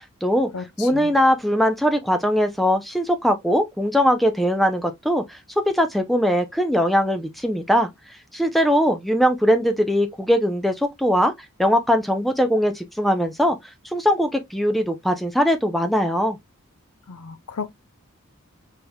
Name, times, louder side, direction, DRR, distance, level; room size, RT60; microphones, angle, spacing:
voice 1, 0.0-0.5 0.8-5.4 5.7-7.9 8.3-11.3 11.6-13.6 13.9-16.4, equal, ahead, 0.4 m, -20 dB
voice 2, 0.5-1.1 17.1-17.7, left 5 dB, 80° left, 0.6 m, -34 dB
4.4 x 3.5 x 2.2 m
head